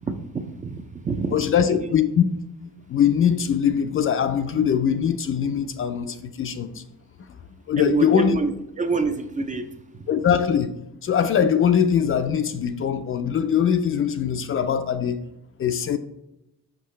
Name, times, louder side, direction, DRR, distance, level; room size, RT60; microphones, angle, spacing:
voice 1, 0.0-1.3 1.6-2.0 7.8-9.7 9.9-10.1, right 4 dB, 25° right, 0.4 m, -27 dB
voice 2, 1.3-2.2 2.9-6.8 7.7-8.4 10.1-10.7 11.0-15.2 15.6-16.0, left 8 dB, 40° left, 0.4 m, -22 dB
6.0 x 5.7 x 3.1 m
cardioid pair, 135°, 34 cm